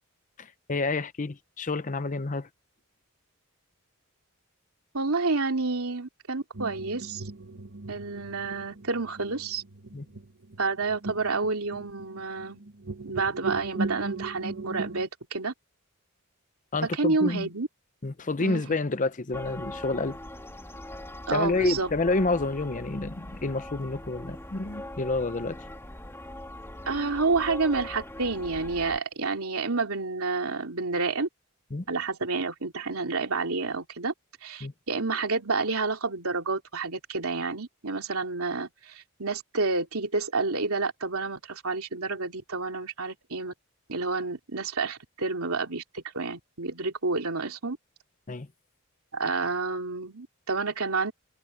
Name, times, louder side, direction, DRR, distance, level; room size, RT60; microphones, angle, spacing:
voice 1, 0.4-2.5 9.9-10.1 16.7-17.5 18.0-20.2 21.3-25.6 31.7-31.8 34.6-34.7 48.3-48.5, left 2 dB, 35° left, 0.7 m, -29 dB
voice 2, 4.9-7.2 7.9-9.6 10.6-12.6 13.0-15.5 16.8-17.7 18.4-18.7 21.3-21.9 26.9-31.3 31.9-34.1 34.4-43.5 43.9-47.8 49.1-51.1, right 3 dB, 80° right, 3.0 m, -29 dB
sound 1, 6.5-15.1, right 3 dB, 65° right, 1.6 m, -37 dB
sound 2, 19.3-29.0, left 1 dB, 10° left, 3.3 m, -41 dB
head